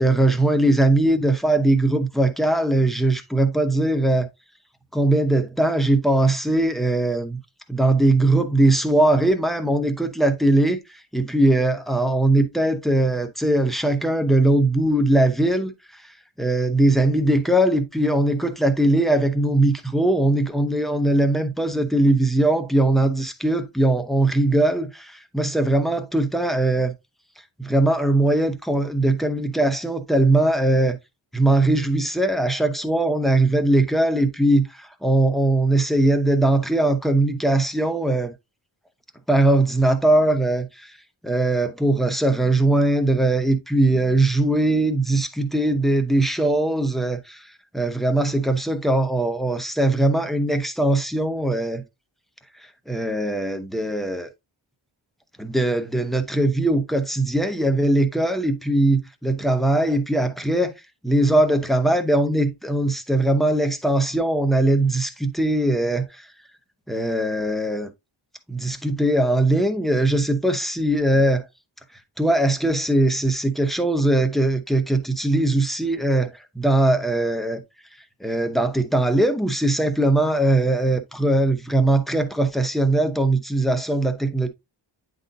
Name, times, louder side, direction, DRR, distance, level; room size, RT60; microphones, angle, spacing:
voice 1, 0.0-4.3 4.9-7.4 7.7-26.9 27.6-31.0 31.3-38.3 39.3-41.0 41.2-51.8 52.9-54.3 55.4-60.7 61.0-66.3 66.9-67.9 68.5-71.5 72.2-77.6 78.2-84.5, right 1 dB, ahead, 0.8 m, -20 dB
9.6 x 3.9 x 2.7 m
wide cardioid pair, 170°, 48 cm